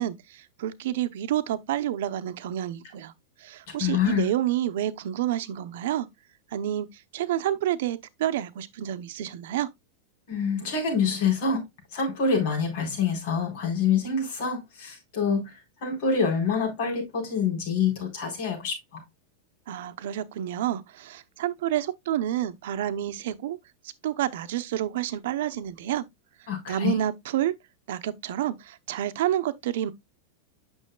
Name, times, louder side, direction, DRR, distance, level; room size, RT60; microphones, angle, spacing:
voice 1, 0.0-3.1 3.4-6.1 6.5-6.9 7.1-9.7 19.7-23.6 24.0-26.0 26.7-27.5 27.9-29.9, right 12 dB, 70° right, 0.7 m, -29 dB
voice 2, 3.8-4.3 10.3-11.6 11.9-15.5 15.8-19.0 26.5-27.0, left 5 dB, 55° left, 4.0 m, -26 dB
8.9 x 6.3 x 2.2 m
supercardioid pair, 160°, 0 cm